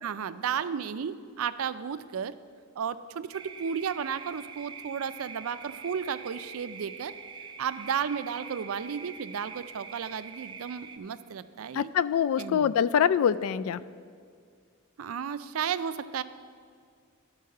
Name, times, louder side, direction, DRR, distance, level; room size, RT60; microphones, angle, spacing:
voice 1, 0.0-2.3 2.8-7.2 7.6-11.9 12.4-12.7 15.0-16.2, right 7 dB, 85° right, 13 dB, 0.4 m, -33 dB
sound 1, 3.3-11.0, right 6 dB, 20° right, 0.4 m, -44 dB
voice 2, 11.7-13.8, left 8 dB, 85° left, 16 dB, 0.3 m, -24 dB
12.0 x 4.7 x 6.5 m, 2.1 s
head